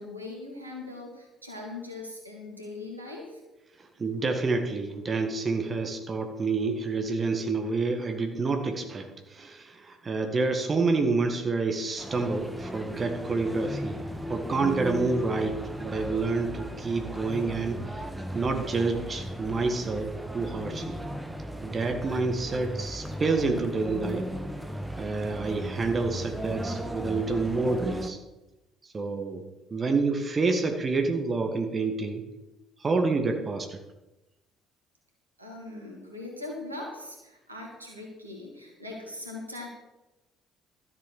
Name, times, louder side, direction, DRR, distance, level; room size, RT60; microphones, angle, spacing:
voice 1, 0.0-3.4 35.4-39.7, left 2 dB, 90° right, -1 dB, 2.3 m, -40 dB
voice 2, 4.0-17.8 18.3-21.0 21.6-24.2 25.0-28.2 28.9-29.4 29.7-32.2 32.8-33.8, right 3 dB, 30° right, 5 dB, 1.8 m, -28 dB
sound 1, 12.0-28.1, equal, 5° right, 1.7 m, -36 dB
13.5 x 7.7 x 6.8 m, 0.99 s
figure-of-eight pair, 50°, 0 cm